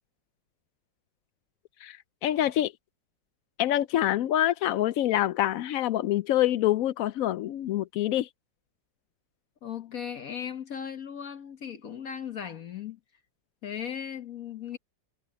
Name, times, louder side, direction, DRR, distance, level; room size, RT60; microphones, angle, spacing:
voice 1, 2.2-2.7 3.6-8.3, left 13 dB, 90° left, 0.7 m, -26 dB
voice 2, 9.6-13.0 13.6-14.8, left 8 dB, 50° left, 1.6 m, -37 dB
omnidirectional pair, 2.0 m